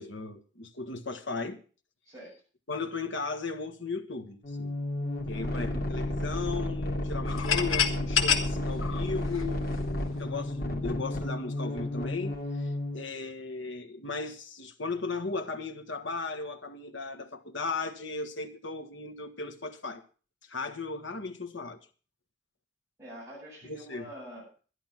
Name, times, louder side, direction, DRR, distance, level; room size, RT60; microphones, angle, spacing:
voice 1, 0.0-1.6 2.7-4.8 5.3-20.0 20.4-21.8 23.7-24.1, left 3 dB, 70° left, 1.5 m, -36 dB
sound 1, 4.4-13.0, left 1 dB, 50° left, 2.6 m, -32 dB
voice 2, 5.3-5.8 23.0-24.5, equal, 15° right, 7.9 m, -46 dB
sound 2, 7.3-10.0, left 7 dB, 85° left, 1.6 m, -28 dB
11.5 x 11.0 x 5.8 m
head